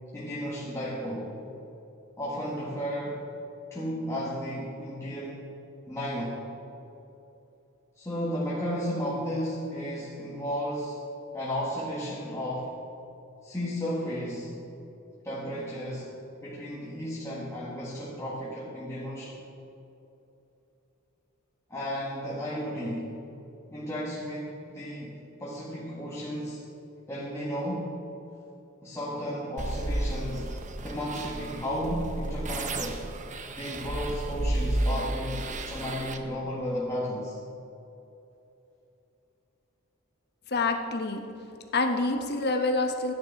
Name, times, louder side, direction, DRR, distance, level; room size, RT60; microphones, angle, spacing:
voice 1, 0.1-1.3 2.2-3.2 3.7-5.4 5.9-6.4 8.0-11.0 11.3-12.8 13.4-14.6 15.2-16.2 16.4-19.4 21.7-23.2 23.7-26.6 27.1-28.0 28.8-30.5 30.8-33.1 33.6-37.3, equal, 15° left, -7 dB, 1.5 m, -33 dB
sound 1, 29.6-36.2, right 2 dB, 35° right, 0.8 m, -32 dB
voice 2, 40.5-41.2 41.7-43.1, left 3 dB, 50° left, 4 dB, 1.2 m, -27 dB
13.0 x 9.7 x 5.3 m, 2.9 s
head